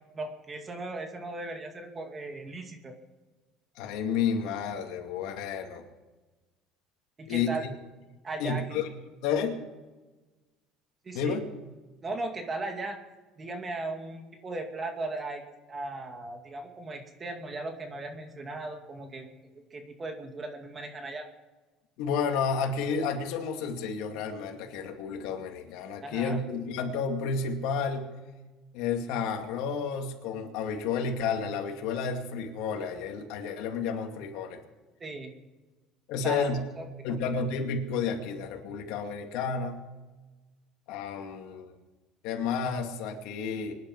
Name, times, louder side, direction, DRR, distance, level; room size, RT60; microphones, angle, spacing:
voice 1, 0.1-2.9 7.2-7.7 8.2-8.6 11.0-11.4 12.0-13.0 13.4-15.4 15.7-19.3 19.7-21.3 26.0-26.4 35.0-35.3 36.2-37.2, right 2 dB, 25° right, 4 dB, 2.3 m, -37 dB
voice 2, 3.8-5.8 7.3-7.5 8.4-8.9 9.2-9.6 11.1-11.4 22.0-28.1 28.7-34.6 36.1-36.6 37.0-39.8 40.9-41.7 42.2-43.8, left 5 dB, 80° left, 3 dB, 2.3 m, -31 dB
24.5 x 10.5 x 4.7 m, 1.2 s
cardioid pair, 130°, 0 cm